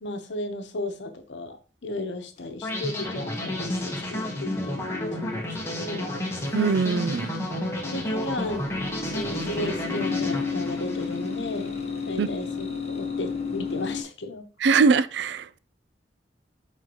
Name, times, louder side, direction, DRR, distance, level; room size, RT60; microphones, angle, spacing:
voice 1, 0.0-6.1 7.7-8.7 9.1-14.4, left 2 dB, 90° left, 0.9 m, -35 dB
sound 1, 2.4-14.0, left 4 dB, 35° left, 1.1 m, -34 dB
sound 2, 2.6-11.7, left 1 dB, 15° left, 1.2 m, -31 dB
voice 2, 6.5-7.3 12.2-12.3 14.6-15.6, right 5 dB, 75° right, 0.4 m, -22 dB
9.3 x 4.0 x 3.0 m
head